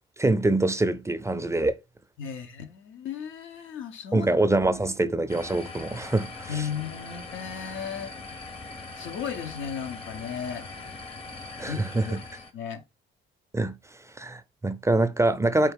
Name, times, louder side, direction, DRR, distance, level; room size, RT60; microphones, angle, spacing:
voice 1, 0.2-1.7 4.1-6.7 11.6-12.2 13.5-13.8 14.2-15.7, right 2 dB, 15° right, 0.4 m, -24 dB
voice 2, 2.2-4.3 6.5-8.5 8.9-10.7 11.7-12.1 12.5-12.8, left 7 dB, 75° left, 0.8 m, -35 dB
sound 1, 5.3-12.5, left 3 dB, 30° left, 0.7 m, -41 dB
4.4 x 2.4 x 3.5 m
cardioid pair, 90°, 20 cm